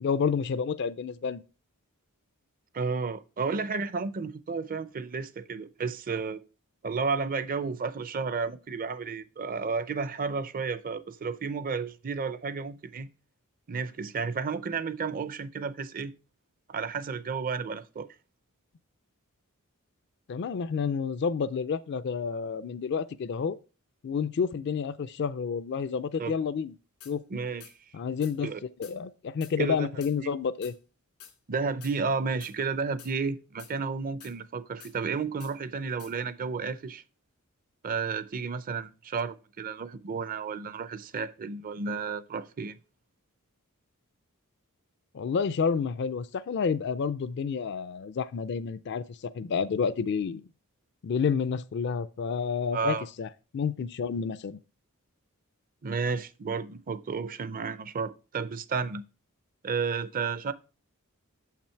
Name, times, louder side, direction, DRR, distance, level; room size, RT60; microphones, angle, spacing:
voice 1, 0.0-1.4 20.3-23.6 24.0-26.7 27.1-27.2 27.9-28.5 28.8-30.7 45.1-50.4 51.0-54.6, left 6 dB, 50° left, 0.4 m, -29 dB
voice 2, 2.7-6.4 6.8-13.1 13.7-16.1 16.7-18.1 26.2-26.3 27.3-27.7 28.4-28.6 29.6-29.9 30.2-30.3 31.5-37.0 37.8-42.8 52.7-53.1 55.8-59.0 59.6-60.5, right 5 dB, 40° right, 0.5 m, -32 dB
sound 1, 27.0-27.1 27.6-27.7 28.2-28.3 28.8-29.0 29.4-29.5 30.0-30.1 30.6-30.7 31.2-31.3 31.8-32.0 32.4-32.5 33.0-33.1 33.6-33.7 34.2-34.3 34.8-34.9 35.4-35.5 36.0-36.1, left 9 dB, 85° left, 1.8 m, -49 dB
6.9 x 5.8 x 4.4 m
head